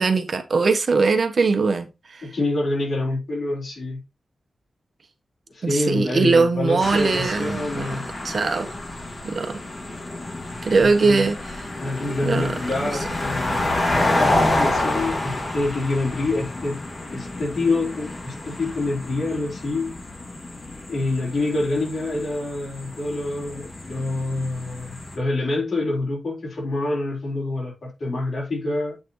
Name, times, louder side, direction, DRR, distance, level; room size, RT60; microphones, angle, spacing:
voice 1, 0.0-2.3 5.6-8.7 9.2-9.6 10.6-11.4 12.2-12.5, right 4 dB, 50° right, 1.1 m, -21 dB
voice 2, 2.2-4.0 5.5-8.1 10.8-11.2 11.8-14.0 14.5-16.8 17.1-20.0 20.9-28.9, left 2 dB, 55° left, 4.5 m, -26 dB
sound 1, 6.8-25.2, left 2 dB, 30° left, 2.1 m, -28 dB
8.1 x 5.9 x 3.1 m
wide cardioid pair, 130°, 0 cm